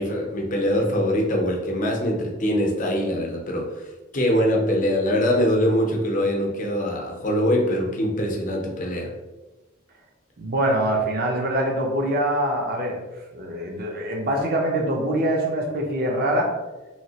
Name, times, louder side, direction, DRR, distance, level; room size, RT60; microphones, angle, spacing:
voice 1, 0.0-3.9 4.1-9.1, equal, 45° left, 0 dB, 0.7 m, -23 dB
voice 2, 10.4-13.0 13.3-16.5, right 1 dB, 50° right, 1 dB, 0.6 m, -24 dB
3.1 x 2.8 x 2.8 m, 1.1 s
head